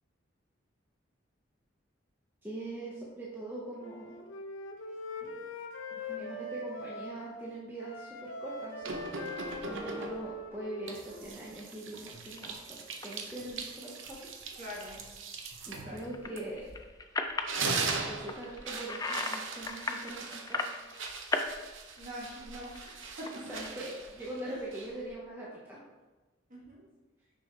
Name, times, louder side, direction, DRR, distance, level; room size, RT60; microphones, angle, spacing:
voice 1, 2.4-4.2 5.2-5.4 6.0-14.4 15.7-16.7 18.1-20.7 23.4-25.8, right 1 dB, 10° right, -6 dB, 0.8 m, -42 dB
Wind instrument woodwind instrument, 3.8-7.4 7.8-11.4, left 2 dB, 85° left, 0.8 m, -42 dB
sound 1, 8.8-10.4 10.9-16.9 17.3-25.1, right 4 dB, 80° right, 0.7 m, -40 dB
sound 2, 12.3-12.5 13.0-13.3 13.7-14.1 16.0-17.6 18.0-19.4 19.7-21.5 21.8-23.7, left 3 dB, 20° left, 0.4 m, -36 dB
voice 2, 14.6-15.0 15.8-16.0 22.0-22.9 23.2-23.3 24.5-24.6 26.5-26.8, equal, 45° right, -4 dB, 1.9 m, -43 dB
6.1 x 5.5 x 3.2 m, 1.2 s
head